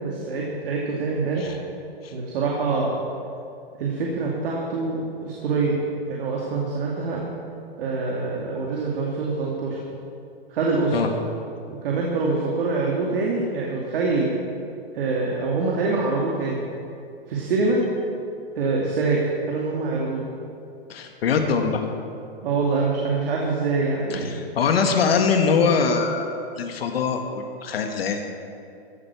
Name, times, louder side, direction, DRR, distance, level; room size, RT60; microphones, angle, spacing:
voice 1, 0.0-1.6 2.1-3.0 3.8-5.8 6.1-7.2 7.8-9.8 10.5-10.9 11.8-14.3 14.9-16.6 17.3-17.8 18.6-19.2 19.5-20.3 22.4-24.3, right 3 dB, 65° right, -3 dB, 2.6 m, -25 dB
voice 2, 20.9-21.8 24.1-28.2, left 5 dB, 75° left, 4 dB, 1.7 m, -23 dB
15.0 x 9.1 x 7.0 m, 2.5 s
hypercardioid pair, 130°, 30 cm